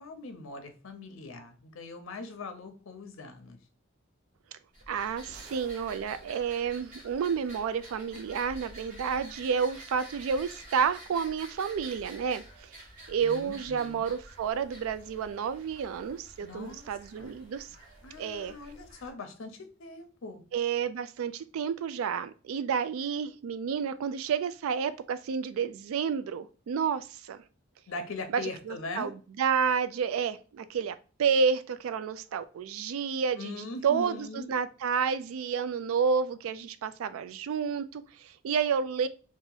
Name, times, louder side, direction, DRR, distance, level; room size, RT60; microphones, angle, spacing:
voice 1, 0.0-3.6 13.2-14.0 16.4-16.9 17.2-17.3 18.0-20.4 27.9-29.1 33.4-34.5, left 3 dB, 75° left, 7 dB, 0.6 m, -41 dB
sound 1, 4.7-19.1, right 1 dB, 40° right, 1.0 m, -50 dB
voice 2, 4.9-12.7 13.1-17.7 18.2-18.5 20.5-27.4 28.3-28.4 28.7-39.1, right 6 dB, 85° right, 13 dB, 0.3 m, -30 dB
2.8 x 2.5 x 3.8 m, 0.37 s
head